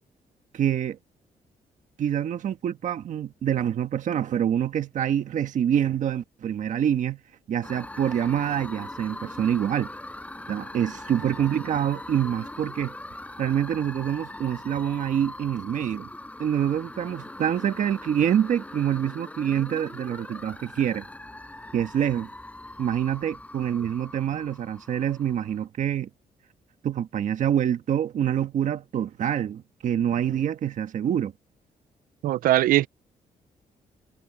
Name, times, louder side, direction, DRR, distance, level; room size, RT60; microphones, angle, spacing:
voice 1, 0.5-1.0 2.0-7.2 7.5-9.9 10.5-12.9 13.4-16.1 16.4-21.0 21.7-22.3 22.8-26.1 26.8-31.3, right 9 dB, 60° right, 1.5 m, -26 dB
sound 1, 7.6-25.6, left 1 dB, 10° left, 4.7 m, -41 dB
voice 2, 32.2-32.9, right 15 dB, 85° right, 0.5 m, -20 dB
cardioid pair, 130°, 14 cm